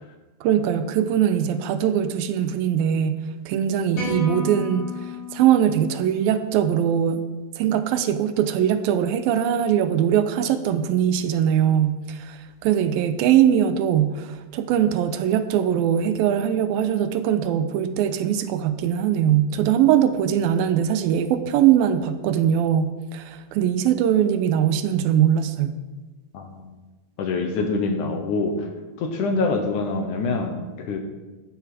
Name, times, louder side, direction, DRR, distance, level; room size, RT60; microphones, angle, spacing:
voice 1, 0.4-3.2 3.5-7.2 7.6-25.8, right 9 dB, 80° right, 10 dB, 2.4 m, -21 dB
sound 1, 3.9-6.3, left 2 dB, 35° left, 6.2 m, -33 dB
voice 2, 26.3-26.7 27.2-28.7 29.0-31.0, left 3 dB, 65° left, 5 dB, 2.3 m, -25 dB
13.0 x 11.0 x 5.0 m, 1.2 s
omnidirectional pair, 4.4 m